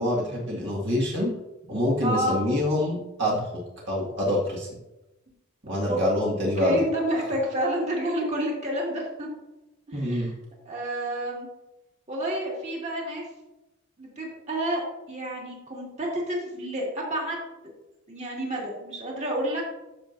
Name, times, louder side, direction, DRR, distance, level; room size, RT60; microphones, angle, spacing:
voice 1, 0.0-1.3 1.7-4.8 5.6-6.8 9.9-10.3, left 1 dB, 55° right, -4 dB, 1.8 m, -26 dB
voice 2, 2.0-2.3 5.9-6.0 6.6-9.3 9.9-10.3 10.7-11.5 12.1-13.2 14.0-14.8 15.1-17.5 18.1-19.6, right 1 dB, 30° right, -3 dB, 2.1 m, -29 dB
14.0 x 5.8 x 2.6 m, 0.98 s
head